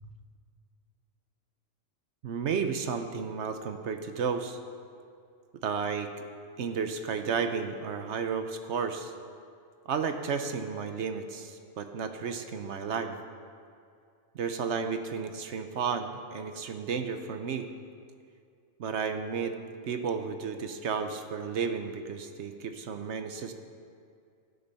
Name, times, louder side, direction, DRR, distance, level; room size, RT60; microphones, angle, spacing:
voice 1, 2.2-4.6 5.6-6.1 6.6-9.1 9.9-13.2 14.3-17.7 18.8-19.5 19.9-23.5, right 6 dB, 70° right, 7 dB, 1.0 m, -32 dB
13.5 x 8.1 x 5.5 m, 2.4 s
omnidirectional pair, 1.2 m